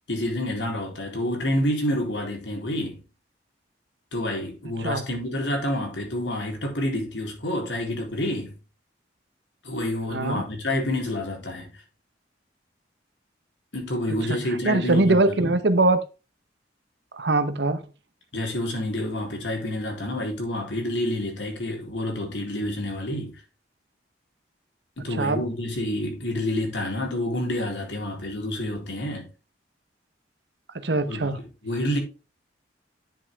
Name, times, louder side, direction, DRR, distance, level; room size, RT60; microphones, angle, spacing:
voice 1, 0.1-3.0 4.1-8.5 9.6-11.7 13.7-15.5 18.3-23.4 25.0-29.3 31.0-31.3 31.6-32.0, left 1 dB, 75° left, 3.7 m, -28 dB
voice 2, 4.6-5.0 10.1-10.4 14.3-14.4 14.6-16.0 17.1-17.8 25.2-25.4 30.8-31.4, right 2 dB, 65° right, 1.0 m, -22 dB
10.0 x 6.3 x 3.5 m
head